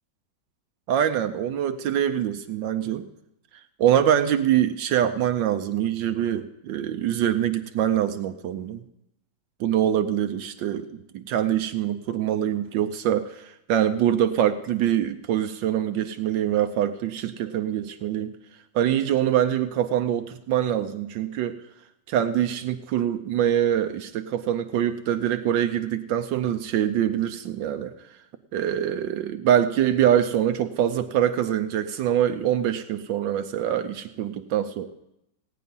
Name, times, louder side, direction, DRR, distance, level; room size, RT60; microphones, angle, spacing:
voice 1, 0.9-3.1 3.8-8.8 9.6-18.3 18.7-21.6 22.1-27.9 28.5-34.9, right 10 dB, 75° right, 9 dB, 1.3 m, -24 dB
17.0 x 9.3 x 5.4 m, 0.85 s
omnidirectional pair, 2.2 m